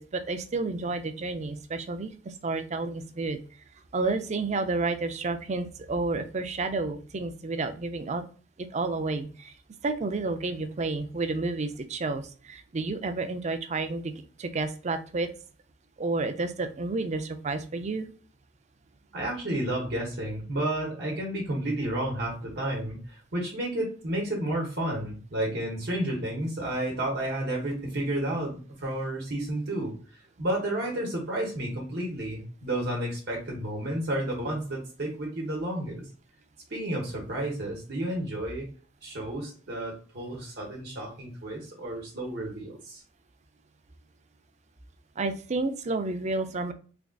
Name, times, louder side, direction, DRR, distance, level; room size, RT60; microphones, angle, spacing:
voice 1, 0.0-3.4 3.9-8.3 8.6-9.5 9.8-14.1 14.4-15.3 16.0-18.1 45.2-46.7, right 3 dB, 40° right, 9 dB, 0.5 m, -30 dB
voice 2, 19.1-29.9 30.4-36.0 36.7-38.7 39.0-43.0, right 1 dB, 60° right, -2 dB, 1.1 m, -31 dB
3.7 x 3.4 x 2.3 m, 0.39 s
head